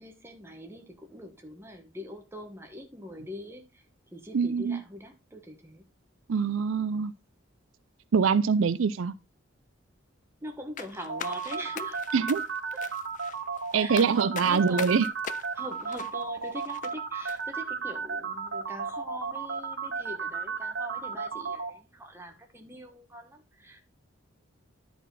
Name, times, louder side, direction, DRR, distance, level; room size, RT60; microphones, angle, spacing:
voice 1, 0.0-3.8 4.1-5.8 10.4-12.0 13.7-15.0 15.5-23.8, equal, 10° right, 1.3 m, -43 dB
voice 2, 4.3-4.8 6.3-7.1 8.1-9.1 12.1-12.4 13.7-15.1, right 5 dB, 75° right, 0.4 m, -24 dB
sound 1, 10.8-16.9 17.3-17.4, left 8 dB, 40° left, 0.4 m, -41 dB
sound 2, 11.1-21.7, right 5 dB, 55° right, 1.0 m, -33 dB
11.0 x 4.3 x 4.1 m
head